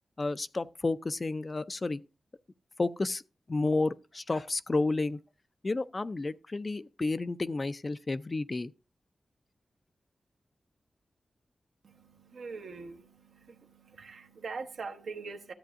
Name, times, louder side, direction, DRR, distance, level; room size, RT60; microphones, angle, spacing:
voice 1, 0.2-2.0 2.8-3.2 3.5-5.2 5.6-8.7, left 3 dB, 40° left, 0.5 m, -31 dB
voice 2, 11.8-15.5, right 4 dB, 85° right, 1.0 m, -43 dB
13.0 x 7.7 x 2.5 m
cardioid pair, 65°, 0 cm